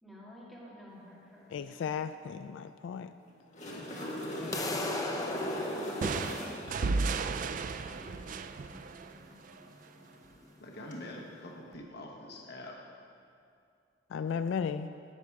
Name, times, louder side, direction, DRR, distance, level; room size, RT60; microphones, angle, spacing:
voice 1, 0.0-1.9 3.9-4.1 4.4-9.4, equal, ahead, -8 dB, 2.5 m, -53 dB
voice 2, 1.5-3.1 14.1-14.9, left 6 dB, 80° left, 12 dB, 0.3 m, -35 dB
sound 1, 3.3-6.9 10.7-10.9, equal, 40° left, 1.5 m, -38 dB
sound 2, 4.5-10.5, left 2 dB, 20° left, 0.7 m, -39 dB
sound 3, 6.0-9.7, right 4 dB, 45° right, 0.3 m, -34 dB
voice 3, 10.6-12.8, left 1 dB, 60° left, 0 dB, 1.1 m, -45 dB
10.5 x 8.5 x 4.7 m, 2.4 s
head